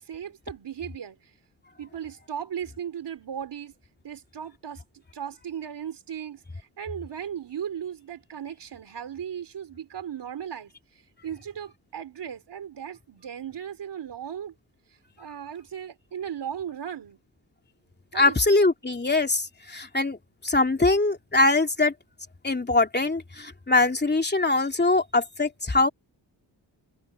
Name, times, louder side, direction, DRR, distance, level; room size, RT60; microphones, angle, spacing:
voice 1, 0.0-1.3 1.8-3.7 4.0-14.5 15.2-17.2 18.1-18.5, right 9 dB, 75° right, 4.0 m, -37 dB
voice 2, 18.1-20.2 20.4-21.9 22.4-25.9, left 3 dB, 25° left, 2.8 m, -22 dB
cardioid pair, 75°, 42 cm